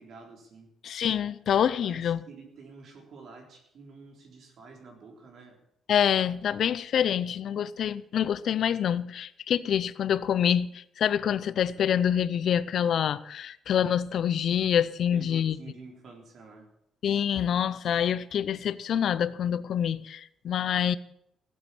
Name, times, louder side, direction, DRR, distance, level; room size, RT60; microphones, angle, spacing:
voice 1, 0.0-0.7 1.8-5.6 15.1-16.7, right 4 dB, 50° right, 3.9 m, -49 dB
voice 2, 0.8-2.2 5.9-15.6 17.0-21.0, left 9 dB, 55° left, 0.5 m, -26 dB
16.5 x 8.6 x 7.1 m
cardioid pair, 155°, 0 cm